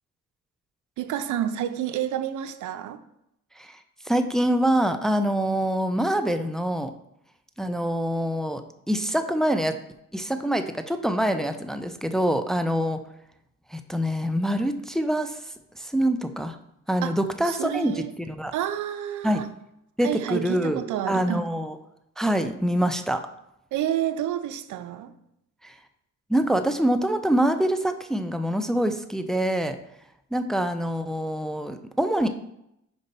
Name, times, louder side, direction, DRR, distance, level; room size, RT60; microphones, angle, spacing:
voice 1, 1.0-3.0 17.0-17.2 17.4-18.1 18.5-19.5 20.0-21.5 23.7-25.1, right 11 dB, 80° right, 0.5 m, -29 dB
voice 2, 4.1-6.9 7.6-8.6 8.9-9.7 10.1-13.0 13.7-15.4 15.8-16.6 16.9-17.9 18.3-18.5 19.2-19.4 20.0-21.8 22.2-23.2 25.6-25.7 26.3-29.8 30.3-32.3, right 1 dB, ahead, 0.4 m, -25 dB
5.3 x 5.3 x 4.0 m
cardioid pair, 90°, 30 cm